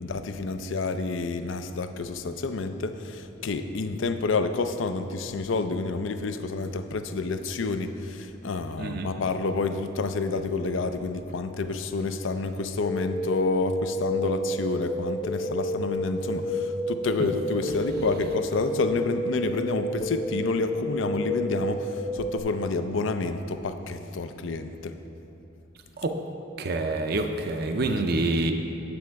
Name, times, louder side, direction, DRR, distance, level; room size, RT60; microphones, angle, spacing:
voice 1, 0.0-25.0, left 3 dB, 75° left, 9 dB, 0.5 m, -29 dB
voice 2, 8.8-9.1 26.0-26.1 26.6-28.5, right 2 dB, 50° right, 5 dB, 0.5 m, -26 dB
sound 1, 12.8-22.4, equal, 25° left, 0.8 m, -31 dB
8.7 x 7.5 x 4.6 m, 2.9 s
head